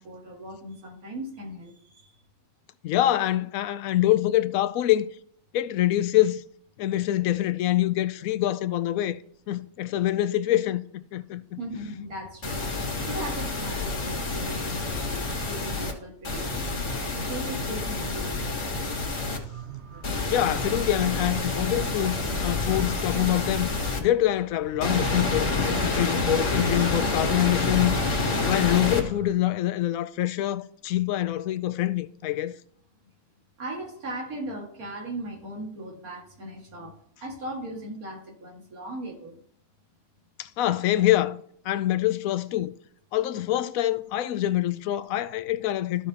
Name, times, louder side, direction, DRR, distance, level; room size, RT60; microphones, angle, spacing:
voice 1, 0.0-2.2 11.6-12.7 13.1-16.6 17.3-18.6 33.6-39.4, right 1 dB, 90° right, 2.3 m, -38 dB
voice 2, 2.8-5.1 5.5-6.4 6.8-9.2 9.5-10.8 11.1-11.4 20.3-23.7 24.0-28.0 28.4-32.5 40.4-42.7 43.1-46.1, left 13 dB, 80° left, 1.0 m, -25 dB
sound 1, 12.4-15.9 16.2-19.4 20.0-24.0 24.8-29.0, left 3 dB, 60° left, 2.0 m, -28 dB
sound 2, 19.3-29.3, right 4 dB, 55° right, 1.1 m, -43 dB
14.0 x 4.9 x 2.8 m
omnidirectional pair, 1.5 m